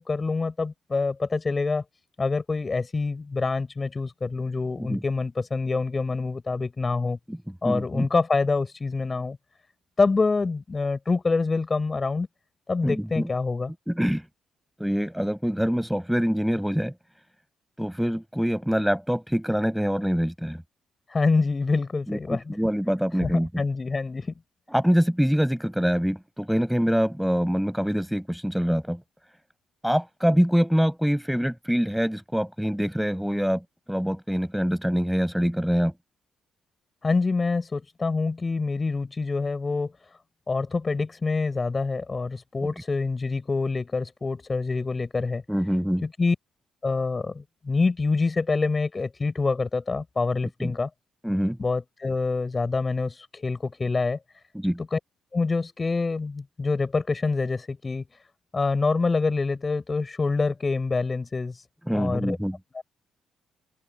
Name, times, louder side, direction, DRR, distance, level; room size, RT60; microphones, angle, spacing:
voice 1, 0.0-1.8 2.2-7.2 7.6-9.4 10.0-12.3 12.7-13.7 21.1-22.6 23.2-24.3 37.0-39.9 40.5-45.4 46.0-46.3 46.8-50.9 51.6-54.2 54.9-55.0 55.3-58.0 58.5-61.5 61.9-62.4 62.7-62.8, left 4 dB, 30° left, 6.4 m, -26 dB
voice 2, 7.6-8.1 12.8-13.3 13.9-14.2 14.8-16.9 17.8-20.6 22.1-23.5 24.7-29.0 29.8-33.6 33.9-35.9 45.5-46.0 50.6-50.7 51.2-51.6 54.5-54.8 61.9-62.6, equal, ahead, 5.4 m, -25 dB
open air
cardioid pair, 90°, 0 cm